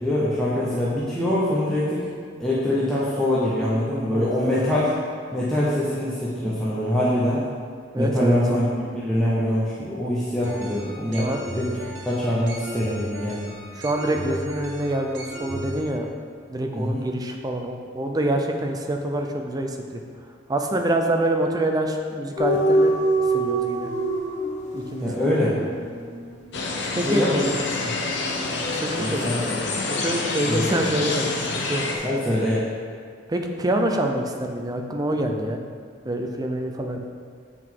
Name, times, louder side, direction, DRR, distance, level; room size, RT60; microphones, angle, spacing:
voice 1, 0.0-2.1 2.4-4.9 5.3-7.5 8.0-11.7 12.0-13.5 16.7-17.0 25.0-25.6 27.0-27.5 29.0-29.6 30.5-30.9 32.0-32.7, left 1 dB, 5° left, -9 dB, 0.9 m, -24 dB
voice 2, 7.9-8.4 11.2-11.4 13.7-16.1 16.5-20.0 20.5-22.9 23.3-23.9 24.7-25.3 26.8-27.2 28.7-29.4 29.9-31.9 33.3-35.6 36.0-37.0, right 1 dB, 20° right, 3 dB, 0.5 m, -26 dB
sound 1, 10.4-15.8, right 1 dB, 85° right, 1.0 m, -36 dB
sound 2, 22.4-29.1 29.4-29.7, right 2 dB, 40° left, 1.1 m, -26 dB
sound 3, 26.5-32.0, left 3 dB, 65° left, 0.7 m, -27 dB
8.0 x 4.7 x 3.8 m, 2.1 s
head